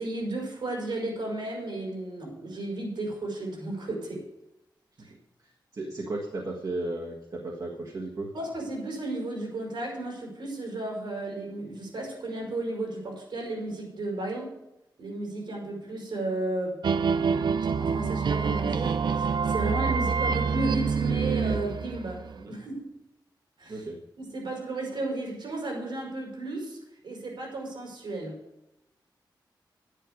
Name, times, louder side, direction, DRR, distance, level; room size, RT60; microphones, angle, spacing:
voice 1, 0.0-4.3 5.0-5.1 8.3-14.6 15.0-16.8 17.2-17.5 17.8-22.9 23.6-23.8 24.2-28.4, right 2 dB, 85° right, 0 dB, 5.2 m, -34 dB
voice 2, 5.4-8.3 22.3-22.6 23.7-24.0, right 2 dB, 50° right, -2 dB, 1.5 m, -35 dB
sound 1, 16.8-22.4, right 5 dB, 65° right, 0.5 m, -26 dB
11.0 x 10.0 x 5.2 m, 0.89 s
wide cardioid pair, 145°, 8 cm